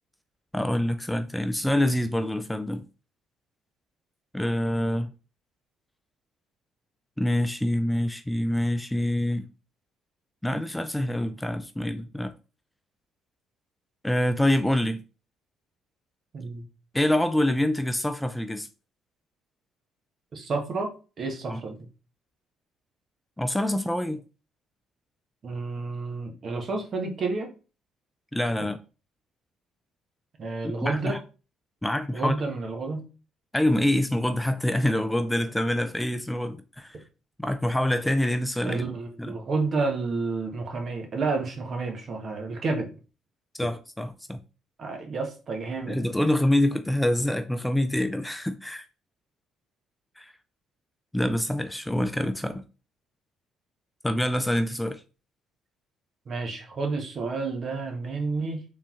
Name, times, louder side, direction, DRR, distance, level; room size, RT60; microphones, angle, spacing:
voice 1, 0.5-2.8 4.3-5.1 7.2-9.5 10.4-12.3 14.0-15.0 16.9-18.7 21.5-21.6 23.4-24.2 28.3-28.8 30.6-31.2 31.8-32.4 33.5-37.0 37.4-38.8 39.2-39.3 43.6-44.4 45.9-48.8 50.2-50.3 51.1-52.6 54.0-55.0, left 1 dB, 5° left, 0.4 m, -26 dB
voice 2, 20.3-20.9 21.2-21.7 25.4-27.5 30.4-31.2 32.1-33.0 38.6-42.9 44.8-46.0 56.3-58.6, right 3 dB, 50° right, 1.3 m, -30 dB
3.7 x 3.1 x 3.6 m
supercardioid pair, 65°, 0 cm